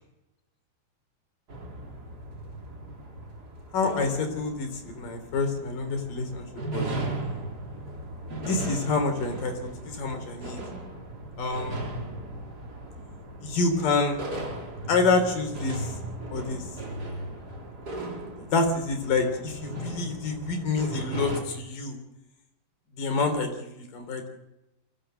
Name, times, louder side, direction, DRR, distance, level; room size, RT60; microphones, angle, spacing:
sound 1, 1.5-21.4, right 2 dB, 25° right, 3.4 m, -37 dB
voice 1, 3.7-6.9 8.4-10.6 11.4-11.8 13.4-14.2 14.9-15.9 16.3-16.6 18.5-22.0 23.0-24.3, left 3 dB, 55° left, 6 dB, 4.9 m, -27 dB
24.0 x 16.0 x 7.8 m, 0.91 s
omnidirectional pair, 4.7 m